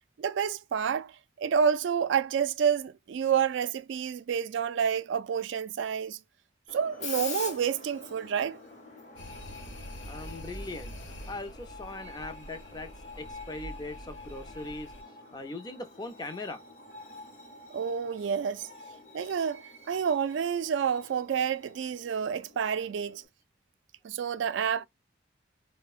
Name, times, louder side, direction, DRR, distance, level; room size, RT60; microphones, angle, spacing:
voice 1, 0.2-1.1 1.4-6.2 6.7-8.6 17.7-18.7 19.1-23.2 24.0-24.9, right 7 dB, 75° right, 0.3 m, -29 dB
Screech, 6.7-23.3, left 4 dB, 40° left, 0.9 m, -46 dB
sound 1, 9.2-15.0, equal, 75° left, 1.0 m, -45 dB
voice 2, 10.1-10.9 11.3-12.9 13.2-14.9 15.3-16.6, left 2 dB, 20° left, 0.5 m, -40 dB
4.3 x 2.1 x 2.3 m
head